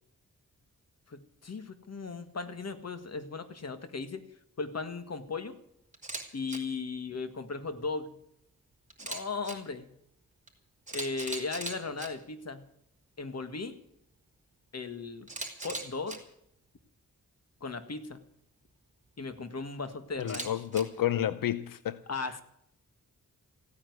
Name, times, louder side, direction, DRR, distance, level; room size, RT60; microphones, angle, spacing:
voice 1, 1.1-4.2 4.6-5.6 6.3-8.2 9.0-9.9 10.9-12.6 13.2-13.8 14.7-15.3 15.6-16.2 17.6-18.2 19.2-20.5 22.1-22.4, left 4 dB, 50° left, 1.8 m, -37 dB
Camera, 5.9-6.2 6.5-6.6 8.9-9.5 10.5-10.6 10.9-12.1 15.3-16.2 20.2-20.8, right 2 dB, 20° right, 4.0 m, -38 dB
voice 2, 20.2-22.4, left 11 dB, 85° left, 0.6 m, -31 dB
16.0 x 9.5 x 9.5 m
wide cardioid pair, 80°, 33 cm